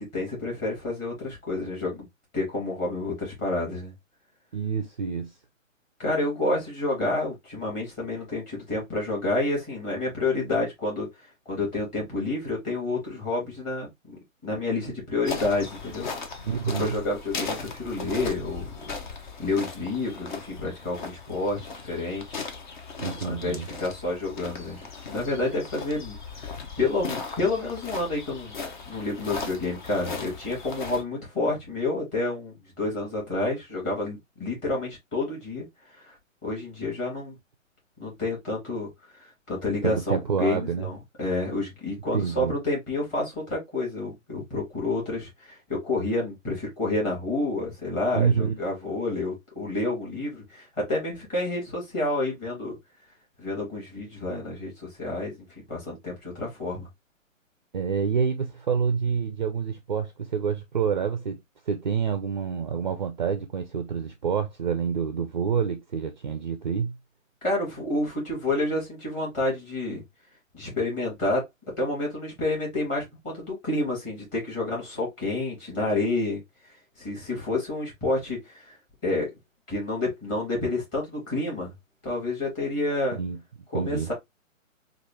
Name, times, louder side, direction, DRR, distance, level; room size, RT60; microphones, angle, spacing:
voice 1, 0.0-2.1 2.3-3.9 6.0-16.1 16.8-18.7 19.4-22.2 23.2-28.5 28.9-36.1 36.4-37.4 38.0-52.8 53.4-56.9 67.4-70.0 70.5-71.4 71.8-76.4 77.0-78.7 79.0-79.3 79.7-81.7 82.0-83.2 83.7-84.1, left 2 dB, 20° left, 2.3 m, -29 dB
voice 2, 4.5-5.3 16.4-17.0 23.0-23.7 39.8-40.9 42.1-42.5 48.1-48.5 57.7-61.4 61.7-66.9 83.1-83.4 83.7-84.1, right 6 dB, 40° right, 0.4 m, -27 dB
sound 1, 15.3-31.0, left 4 dB, 35° left, 0.7 m, -37 dB
4.6 x 2.5 x 2.9 m
hypercardioid pair, 150°, 40 cm